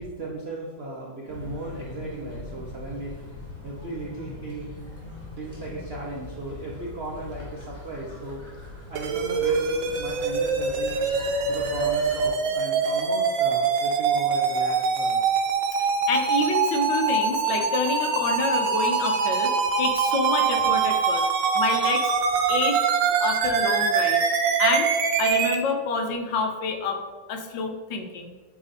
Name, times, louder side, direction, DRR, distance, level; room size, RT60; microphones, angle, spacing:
voice 1, 0.0-3.1 3.6-4.7 5.4-8.4 8.7-11.0 11.5-15.3, right 2 dB, 65° right, -3 dB, 0.6 m, -36 dB
sound 1, 1.3-12.3, left 2 dB, 10° left, 1.7 m, -41 dB
sound 2, 9.0-25.6, right 5 dB, 80° right, 1.3 m, -24 dB
voice 2, 15.8-19.5 19.8-21.3 21.5-22.1 22.5-22.9 23.2-24.2 24.6-24.9 25.2-27.0 27.3-28.3, left 4 dB, 75° left, 4 dB, 1.4 m, -28 dB
8.4 x 2.9 x 4.0 m, 1.3 s
omnidirectional pair, 2.1 m